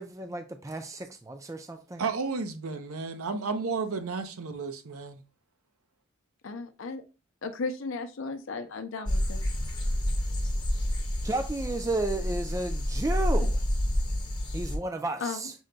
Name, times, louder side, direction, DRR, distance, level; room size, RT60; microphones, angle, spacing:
voice 1, 0.0-2.0 11.2-13.6 14.5-15.5, right 2 dB, 15° right, 0.3 m, -32 dB
voice 2, 2.0-5.2, right 4 dB, 85° right, 0.6 m, -32 dB
voice 3, 6.4-7.0 7.4-9.4 15.2-15.4, left 4 dB, 65° left, 0.5 m, -35 dB
sound 1, 9.1-14.8, left 1 dB, 20° left, 0.7 m, -29 dB
6.3 x 2.2 x 3.8 m
head